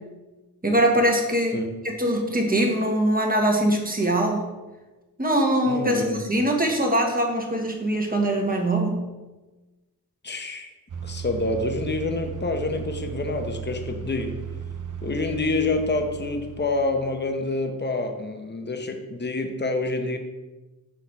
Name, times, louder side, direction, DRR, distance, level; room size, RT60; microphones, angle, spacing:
voice 1, 0.6-1.6 1.9-4.5 5.2-9.0, right 1 dB, 20° right, 1 dB, 1.3 m, -22 dB
voice 2, 5.7-6.2 10.2-10.7 11.0-14.3 15.0-20.2, left 2 dB, 25° left, 5 dB, 0.8 m, -27 dB
sound 1, 10.9-17.5, right 8 dB, 50° right, 0.6 m, -36 dB
6.1 x 4.1 x 4.1 m, 1.2 s
cardioid pair, 45°, 39 cm